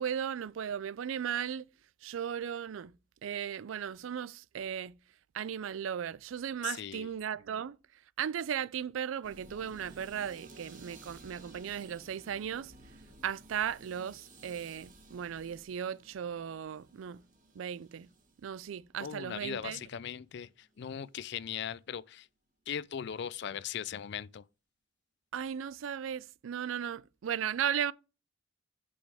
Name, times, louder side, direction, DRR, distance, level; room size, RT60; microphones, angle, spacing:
voice 1, 0.0-1.6 2.0-2.9 3.2-5.0 5.3-7.8 8.2-12.7 13.2-17.2 17.6-18.1 18.4-19.8 25.3-27.9, right 8 dB, 80° right, 0.4 m, -36 dB
voice 2, 6.6-7.1 19.0-22.3 22.7-24.4, left 8 dB, 60° left, 0.4 m, -39 dB
sound 1, 9.2-20.3 20.6-20.9, right 2 dB, 45° right, 2.0 m, -55 dB
10.5 x 5.2 x 3.5 m
head